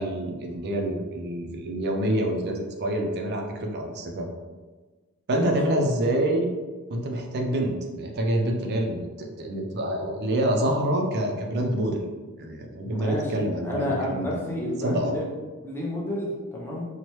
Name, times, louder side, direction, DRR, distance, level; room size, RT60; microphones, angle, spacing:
voice 1, 0.0-4.3 5.3-6.5 6.9-12.1 12.4-14.4 14.8-15.1, right 1 dB, 45° right, 2 dB, 0.4 m, -27 dB
voice 2, 12.9-15.2 15.6-16.9, left 1 dB, 10° left, -5 dB, 0.5 m, -30 dB
3.0 x 2.1 x 3.0 m, 1.3 s
head